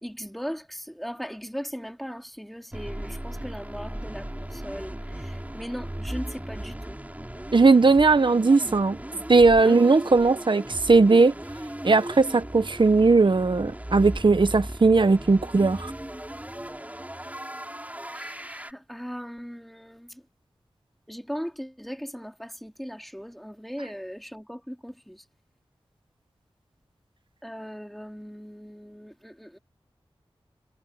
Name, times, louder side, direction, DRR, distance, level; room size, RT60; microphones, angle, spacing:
voice 1, 0.0-4.9 5.5-7.0 9.6-9.8 18.1-20.1 21.1-25.2 27.4-29.6, equal, ahead, 3.3 m, -38 dB
sound 1, 2.7-18.7, right 1 dB, 15° right, 6.5 m, -37 dB
voice 2, 7.5-9.0 9.3-11.3 11.8-15.9, right 3 dB, 55° right, 1.1 m, -18 dB
cardioid pair, 40°, 10 cm